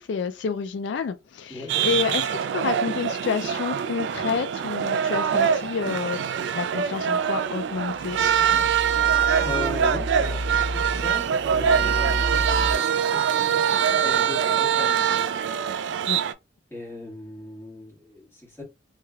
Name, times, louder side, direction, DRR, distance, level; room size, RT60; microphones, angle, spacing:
voice 1, 0.0-2.3 2.5-6.3 6.5-8.2 16.1-16.2, left 6 dB, 75° left, 0.3 m, -29 dB
voice 2, 1.5-1.9 9.4-10.4 10.7-12.8 13.1-15.2 16.7-18.6, left 2 dB, 15° left, 1.6 m, -37 dB
sound 1, 1.7-16.3, right 8 dB, 70° right, 0.3 m, -24 dB
sound 2, 7.7-12.8, equal, 45° left, 0.9 m, -32 dB
3.1 x 2.8 x 2.3 m
head